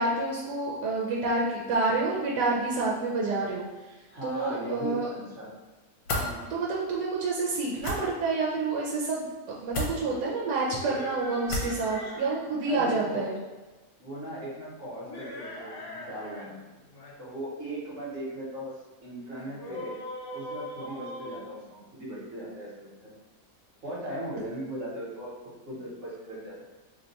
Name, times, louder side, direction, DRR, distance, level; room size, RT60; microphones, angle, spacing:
voice 1, 0.0-3.6 4.2-5.1 6.5-13.4, right 3 dB, 80° right, -4 dB, 1.1 m, -28 dB
voice 2, 4.1-5.6 6.2-6.4 12.7-13.3 14.0-16.6 17.2-19.9 20.3-23.1 23.8-25.3 25.7-26.6, right 1 dB, 55° right, -6 dB, 1.2 m, -38 dB
sound 1, 6.1-6.3 7.8-8.0 9.7-9.9 11.5-11.8, left 2 dB, 75° left, 1.2 m, -30 dB
sound 2, 10.6-12.4 15.0-16.5 16.8-17.1 19.3-22.2, left 1 dB, 50° left, 1.1 m, -41 dB
2.9 x 2.2 x 3.9 m, 1.1 s
omnidirectional pair, 1.7 m